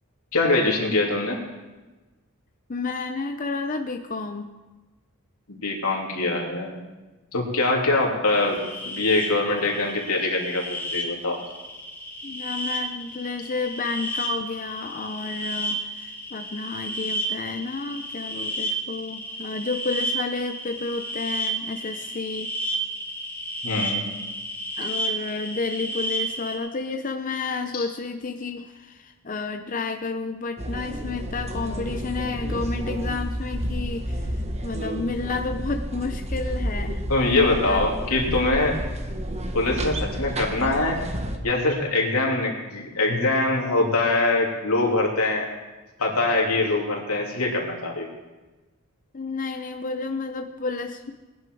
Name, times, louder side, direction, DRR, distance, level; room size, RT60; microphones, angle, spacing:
voice 1, 0.3-1.4 5.5-6.7 7.3-11.4 23.6-24.0 27.7-27.9 37.1-38.8 39.5-41.0 41.4-45.5 46.0-48.1, left 2 dB, 85° left, -1 dB, 3.0 m, -23 dB
voice 2, 2.7-4.5 12.2-22.5 24.8-37.0 37.5-37.9 49.1-51.1, left 3 dB, 40° left, 5 dB, 0.6 m, -31 dB
sound 1, 8.3-26.6, right 1 dB, 10° left, 2.2 m, -32 dB
sound 2, 30.6-41.4, equal, 30° right, 1.2 m, -30 dB
20.0 x 10.5 x 4.7 m, 1.2 s
head